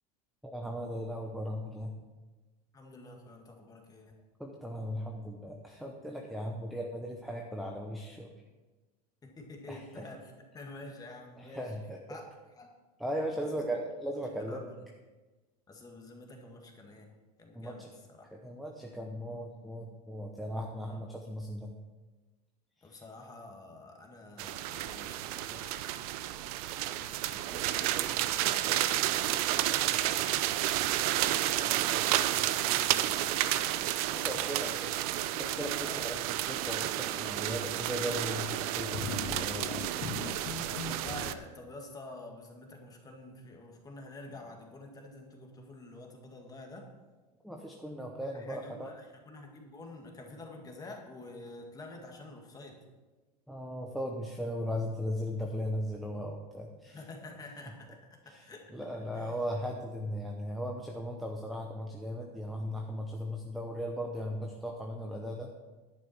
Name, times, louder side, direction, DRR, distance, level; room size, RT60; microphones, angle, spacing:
voice 1, 0.4-1.9 4.4-8.3 9.7-10.1 11.5-12.0 13.0-14.7 17.5-17.9 18.4-21.7 30.5-30.9 34.1-34.7 35.4-36.2 36.5-40.3 47.4-48.9 53.5-57.0 58.3-58.4 58.7-65.5, equal, ahead, 1 dB, 0.8 m, -37 dB
voice 2, 2.7-4.2 9.2-11.8 12.1-12.2 12.6-12.7 13.4-13.7 14.1-14.8 15.7-17.1 17.4-18.3 20.8-21.0 22.8-25.9 26.9-30.2 30.5-33.3 33.7-35.0 35.8-36.0 40.6-46.9 48.3-52.8 56.9-58.7 59.1-59.4, left 2 dB, 15° left, 2 dB, 1.9 m, -49 dB
sound 1, 24.4-41.3, right 14 dB, 60° right, 0.6 m, -31 dB
sound 2, 38.8-41.2, left 4 dB, 50° left, 1.2 m, -39 dB
11.0 x 9.3 x 4.4 m, 1.2 s
supercardioid pair, 135°, 21 cm